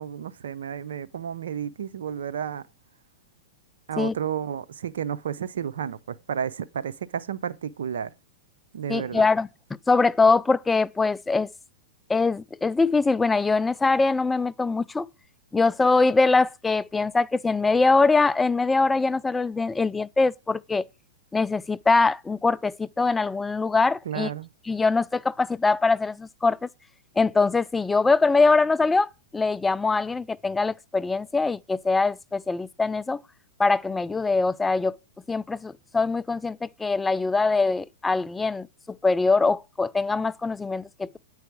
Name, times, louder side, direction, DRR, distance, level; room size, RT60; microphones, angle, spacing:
voice 1, 0.0-2.7 3.9-8.1 8.7-9.2 24.1-24.5, right 8 dB, 80° right, 0.6 m, -32 dB
voice 2, 8.9-9.5 9.9-11.5 12.1-15.1 15.5-20.9 21.3-24.3 24.7-26.7 27.2-33.2 33.6-35.0 35.3-41.2, left 3 dB, 10° left, 0.3 m, -23 dB
9.1 x 4.8 x 4.7 m
hypercardioid pair, 125°, 0 cm